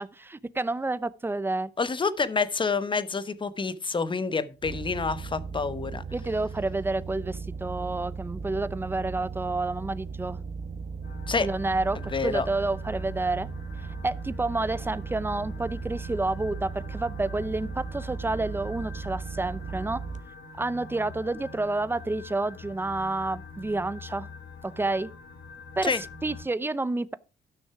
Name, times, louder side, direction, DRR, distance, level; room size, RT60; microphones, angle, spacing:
voice 1, 0.0-1.7 6.1-10.4 11.4-13.5 14.0-20.0 20.6-24.3 24.6-25.1 25.8-25.9 26.2-27.1, right 2 dB, 10° right, 0.6 m, -29 dB
voice 2, 1.8-6.0 11.3-11.5 12.1-12.5 25.8-26.0, left 4 dB, 25° left, 1.0 m, -28 dB
sound 1, 4.6-20.2, right 5 dB, 40° right, 1.0 m, -37 dB
sound 2, 11.0-26.4, left 4 dB, 70° left, 2.2 m, -45 dB
13.0 x 6.3 x 4.7 m
cardioid pair, 110°, 18 cm